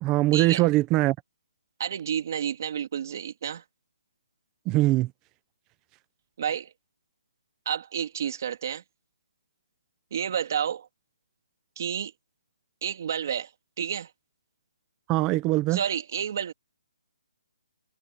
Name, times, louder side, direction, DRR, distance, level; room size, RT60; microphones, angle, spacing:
voice 1, 0.0-1.1 4.7-5.1 15.1-15.8, right 18 dB, 10° right, 0.8 m, -22 dB
voice 2, 1.8-3.6 6.4-6.7 7.6-8.8 10.1-10.9 11.8-12.1 12.8-13.5 13.8-14.1 15.7-16.5, right 8 dB, 35° right, 3.0 m, -30 dB
hypercardioid pair, 175°, 3 cm